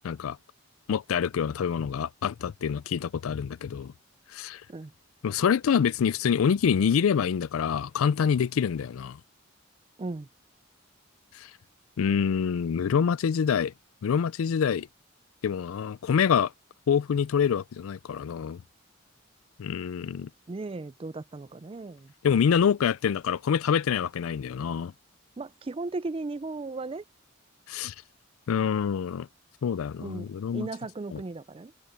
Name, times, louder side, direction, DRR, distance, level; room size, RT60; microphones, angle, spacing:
voice 1, 0.0-0.4 0.9-3.9 4.3-4.6 5.2-9.2 11.4-11.5 12.0-13.7 14.0-14.9 15.4-16.5 16.9-18.6 19.6-20.3 22.2-24.9 27.7-27.9 28.5-29.3 29.6-30.7 31.1-31.2, left 7 dB, 85° left, 0.4 m, -26 dB
voice 2, 20.5-22.1 25.4-27.0 30.0-30.3 30.5-31.7, right 3 dB, 25° right, 0.4 m, -36 dB
head